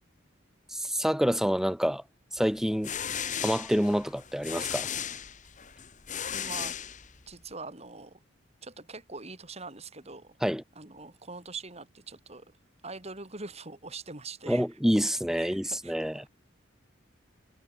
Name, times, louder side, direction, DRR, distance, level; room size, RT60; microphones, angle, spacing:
voice 1, 0.7-2.0 2.3-2.9 3.4-4.9 10.4-10.6 14.5-16.3, equal, ahead, 1.8 m, -27 dB
sound 1, 2.6-7.4, left 8 dB, 40° left, 1.8 m, -36 dB
voice 2, 6.3-6.8 7.3-8.2 8.6-10.3 10.8-12.4 12.8-14.7 15.4-16.3, right 3 dB, 30° right, 3.8 m, -43 dB
head